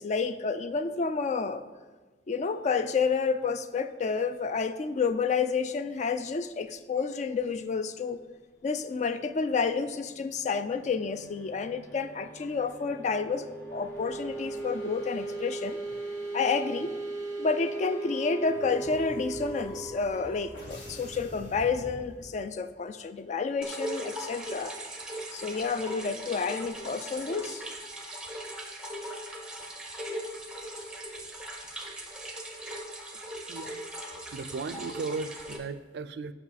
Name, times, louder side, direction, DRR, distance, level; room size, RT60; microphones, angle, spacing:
voice 1, 0.0-1.6 2.3-8.2 8.6-15.8 16.3-16.9 17.4-24.7 25.3-27.6, left 5 dB, 40° left, 11 dB, 0.3 m, -30 dB
sound 1, 9.5-22.1, right 3 dB, 15° left, 2.0 m, -39 dB
sound 2, 17.6-22.6, left 1 dB, 65° left, 1.5 m, -46 dB
sound 3, 23.6-35.6, right 1 dB, 5° right, 0.7 m, -39 dB
voice 2, 33.5-33.9 34.3-36.3, right 4 dB, 60° right, 13 dB, 0.3 m, -36 dB
7.2 x 5.6 x 4.1 m, 1.3 s
head